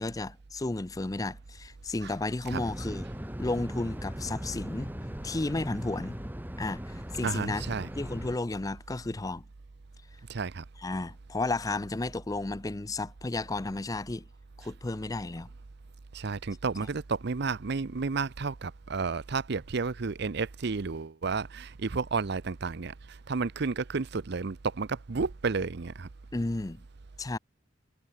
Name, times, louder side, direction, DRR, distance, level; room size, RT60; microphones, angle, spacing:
voice 1, 0.0-3.1 3.4-4.9 5.2-6.2 6.6-7.6 8.0-9.4 10.8-14.2 14.6-15.5 26.3-26.8 27.2-27.4, left 2 dB, 20° left, 0.5 m, -33 dB
sound 1, 2.5-8.4, equal, 10° right, 2.6 m, -39 dB
voice 2, 7.2-7.9 10.3-10.6 16.1-26.1, right 4 dB, 60° right, 0.6 m, -32 dB
head